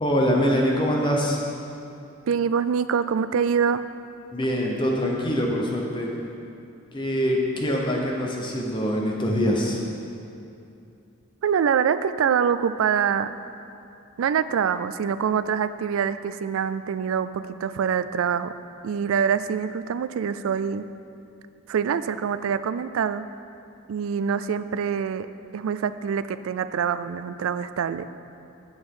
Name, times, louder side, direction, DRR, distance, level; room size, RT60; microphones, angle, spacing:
voice 1, 0.0-1.4 4.3-6.1 6.9-9.8, equal, 25° left, -1 dB, 0.8 m, -24 dB
voice 2, 2.3-3.8 11.4-13.3 14.2-18.5 18.8-20.8 21.7-23.2 23.9-25.3 25.5-28.1, right 7 dB, 90° right, 13 dB, 0.3 m, -25 dB
9.6 x 8.0 x 3.7 m, 2.6 s
head